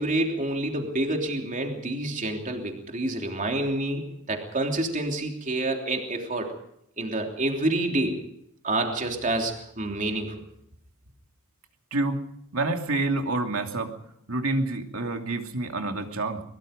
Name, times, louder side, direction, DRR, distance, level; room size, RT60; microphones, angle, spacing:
voice 1, 0.0-4.0 4.3-6.5 7.0-8.2 8.6-10.4, right 2 dB, 40° right, 2 dB, 3.3 m, -28 dB
voice 2, 11.9-12.2 12.5-14.0 14.3-16.4, right 2 dB, 75° right, 4 dB, 2.7 m, -28 dB
23.0 x 22.0 x 5.2 m, 0.76 s
head